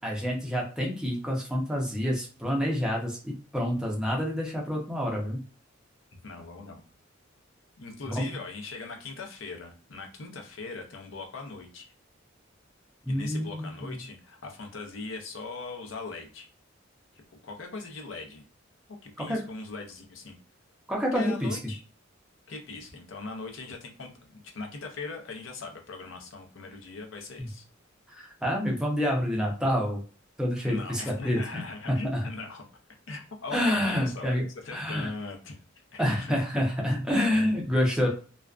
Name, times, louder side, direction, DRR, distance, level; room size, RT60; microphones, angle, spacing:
voice 1, 0.0-5.4 8.0-8.3 13.0-13.9 19.2-19.4 20.9-21.6 27.4-27.5 28.1-30.0 30.4-31.6 31.9-32.3 33.5-34.4 34.7-35.1 36.0-38.1, equal, 5° right, -2 dB, 0.5 m, -28 dB
voice 2, 6.2-6.8 7.8-11.8 13.1-16.5 17.1-18.4 18.9-20.4 21.1-21.8 22.5-27.6 30.6-32.7 33.1-34.4 34.6-35.5 35.9-36.3 37.2-37.3, left 3 dB, 70° left, 3 dB, 0.6 m, -40 dB
2.4 x 2.2 x 2.3 m, 0.38 s
head